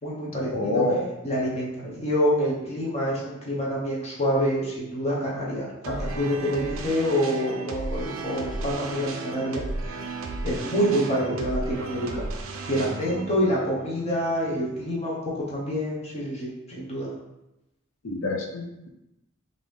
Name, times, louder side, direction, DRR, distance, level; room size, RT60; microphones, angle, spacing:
voice 1, 0.0-0.8 1.2-10.0 10.4-12.2 12.7-16.5 16.8-17.1, equal, 30° left, -6 dB, 0.8 m, -27 dB
voice 2, 0.5-1.1 18.0-18.9, left 2 dB, 70° left, 2 dB, 0.6 m, -27 dB
sound 1, 5.8-15.0, right 3 dB, 85° right, 0.4 m, -35 dB
3.7 x 2.6 x 3.2 m, 0.93 s
head